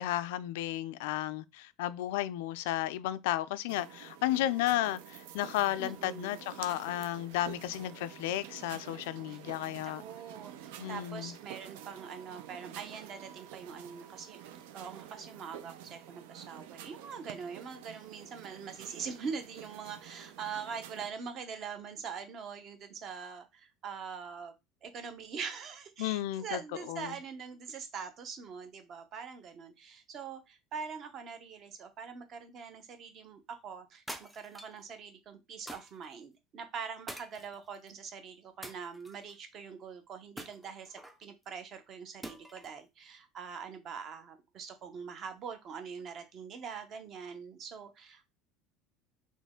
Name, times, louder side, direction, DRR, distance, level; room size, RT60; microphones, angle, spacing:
voice 1, 0.0-10.0 10.8-11.3 26.0-26.6 26.9-27.1, left 14 dB, 90° left, 0.4 m, -33 dB
sound 1, 3.7-21.1, right 10 dB, 85° right, 0.6 m, -49 dB
voice 2, 5.8-6.4 9.3-9.4 9.8-14.4 14.7-24.5 24.8-48.3, right 6 dB, 35° right, 0.8 m, -43 dB
sound 2, 34.1-34.8 35.7-36.1 37.1-37.9 38.6-39.4 40.4-41.2 42.2-42.8, right 1 dB, 5° right, 0.4 m, -46 dB
4.2 x 3.0 x 3.6 m
cardioid pair, 165°, 0 cm